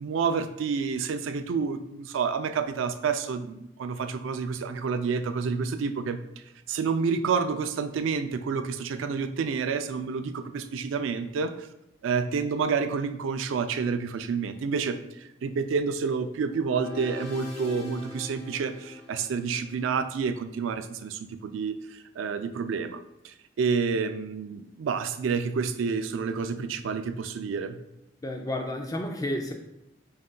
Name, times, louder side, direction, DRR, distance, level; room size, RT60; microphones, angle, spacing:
voice 1, 0.0-6.2 6.7-11.7 12.0-23.0 23.2-27.8, right 5 dB, 80° right, 10 dB, 0.3 m, -29 dB
sound 1, 16.5-19.8, left 3 dB, 70° left, 1.0 m, -41 dB
voice 2, 28.2-29.5, left 1 dB, 20° left, 4 dB, 0.4 m, -31 dB
5.3 x 3.7 x 2.2 m, 0.84 s
head